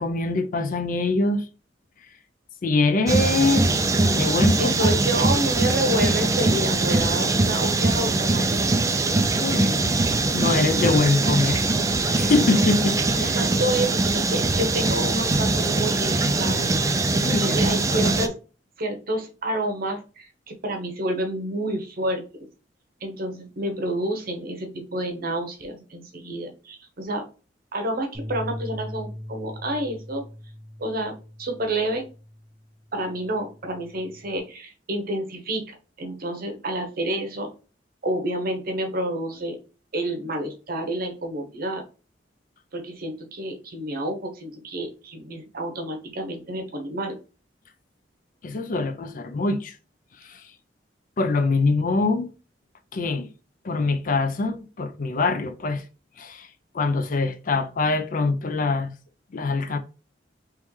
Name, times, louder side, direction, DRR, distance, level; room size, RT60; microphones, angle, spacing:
voice 1, 0.0-1.4 2.6-4.7 9.4-10.0 10.3-11.6 12.2-13.3 17.0-17.6 17.9-18.3 48.4-49.7 50.3-50.4 51.2-52.3 52.9-53.3 53.6-55.8 56.2-56.5 56.7-58.9 59.3-59.8, left 3 dB, 45° left, 0.4 m, -24 dB
sound 1, 3.1-18.3, right 2 dB, 20° right, 0.3 m, -22 dB
voice 2, 4.6-8.5 9.1-9.4 13.1-16.7 17.2-18.3 18.8-22.5 23.0-27.2 27.7-30.2 30.8-32.1 32.9-37.5 38.0-39.6 39.9-41.8 42.7-47.2, right 1 dB, 55° right, 0.8 m, -29 dB
Bass guitar, 28.1-32.6 33.0-34.4, equal, 25° left, 1.0 m, -40 dB
3.6 x 3.1 x 3.1 m
head